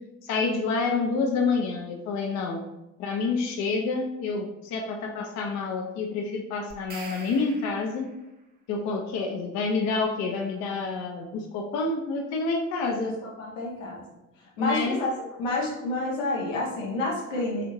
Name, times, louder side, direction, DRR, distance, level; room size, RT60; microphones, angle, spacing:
voice 1, 0.2-2.6 3.0-8.1 8.7-13.2 14.6-15.0, left 4 dB, 45° left, 2 dB, 0.5 m, -28 dB
sound 1, 6.7-8.3, right 4 dB, 25° right, 0.6 m, -44 dB
voice 2, 13.2-14.0 14.6-15.1 15.4-17.7, left 2 dB, 75° left, -3 dB, 0.8 m, -29 dB
3.4 x 2.4 x 2.9 m, 0.95 s
figure-of-eight pair, 45°, 38 cm